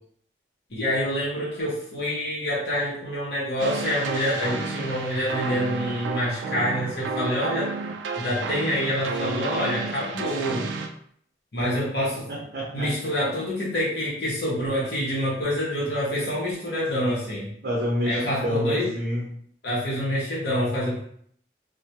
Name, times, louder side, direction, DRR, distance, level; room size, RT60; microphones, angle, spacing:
voice 1, 0.7-7.7 8.2-10.6 11.5-12.3 12.7-17.5 18.1-18.9 19.6-21.0, equal, 65° left, -6 dB, 0.8 m, -26 dB
sound 1, 3.6-10.9, right 4 dB, 90° right, 0.3 m, -31 dB
voice 2, 12.3-12.9 17.6-19.3, left 1 dB, 55° right, -6 dB, 0.7 m, -28 dB
2.2 x 2.2 x 2.8 m, 0.64 s
head